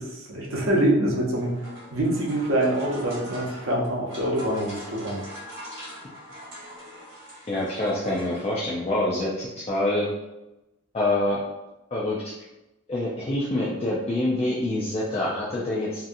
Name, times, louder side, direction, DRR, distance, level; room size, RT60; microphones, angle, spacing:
voice 1, 0.0-1.5 1.9-5.2, right 1 dB, 75° right, -3 dB, 0.7 m, -25 dB
sound 1, 1.2-8.9, equal, 55° right, 1.2 m, -42 dB
voice 2, 7.5-10.1 10.9-11.4 11.9-12.2 12.9-16.1, left 1 dB, 30° left, -6 dB, 0.3 m, -26 dB
2.7 x 2.3 x 2.5 m, 0.97 s
head